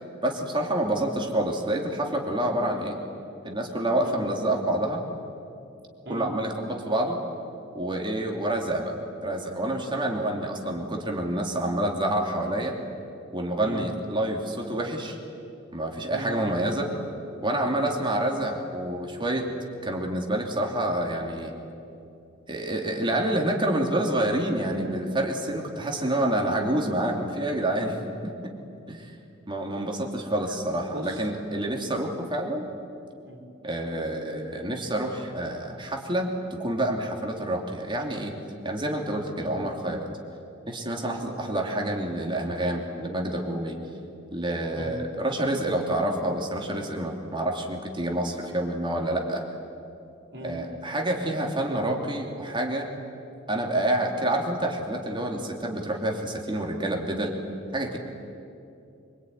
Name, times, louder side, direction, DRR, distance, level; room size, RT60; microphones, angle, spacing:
voice 1, 0.2-3.0 3.4-5.0 6.1-7.2 7.7-8.9 9.2-12.7 13.3-15.2 15.7-16.9 17.4-19.5 19.8-21.5 22.5-28.0 28.2-28.4 28.9-29.1 29.5-32.6 33.6-38.4 38.6-40.0 40.7-43.8 44.3-49.4 50.4-52.9 53.5-57.4 57.7-58.0, right 1 dB, 25° right, 1 dB, 3.0 m, -28 dB
voice 2, 16.1-16.5 17.7-18.0 30.9-31.3 33.3-33.4 39.4-39.5 44.7-45.0 50.3-50.6, right 1 dB, 55° right, 1 dB, 4.6 m, -38 dB
25.0 x 24.5 x 9.7 m, 2.7 s
head